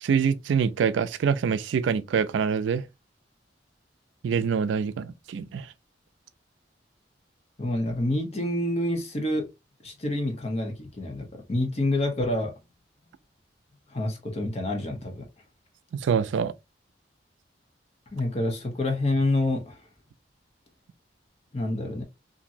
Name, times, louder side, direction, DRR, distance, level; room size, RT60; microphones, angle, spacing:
voice 1, 0.0-2.8 4.2-5.7 15.9-16.5, right 6 dB, 85° right, 0.3 m, -25 dB
voice 2, 7.6-9.5 9.8-12.5 13.9-15.2 18.1-19.8 21.5-22.0, left 1 dB, 35° left, 0.8 m, -27 dB
2.9 x 2.6 x 2.6 m
head